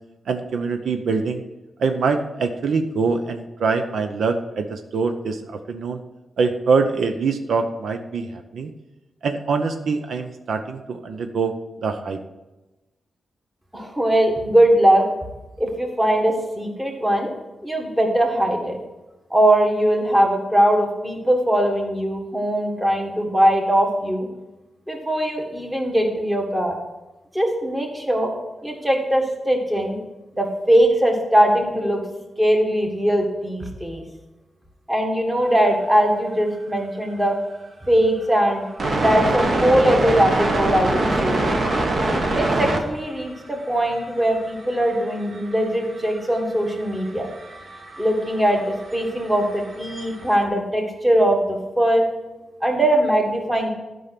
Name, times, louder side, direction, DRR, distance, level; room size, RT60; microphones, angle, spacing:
voice 1, 0.3-1.4 1.8-6.0 6.4-8.7 9.2-11.5 11.8-12.2, right 4 dB, 75° right, 7 dB, 0.7 m, -24 dB
voice 2, 13.7-15.0 15.6-17.3 17.6-18.8 19.3-24.3 24.9-26.7 27.3-28.3 28.6-30.0 30.3-32.0 32.4-34.0 34.9-37.4 37.8-38.6 39.0-41.5 42.3-47.3 48.0-52.0 52.6-53.7, right 1 dB, 10° right, 1 dB, 1.7 m, -20 dB
sound 1, 37.5-37.6 38.6-42.9 43.2-43.4 43.7-50.4, right 2 dB, 40° right, 1.3 m, -25 dB
12.0 x 5.5 x 5.9 m, 1.0 s
wide cardioid pair, 155°, 0 cm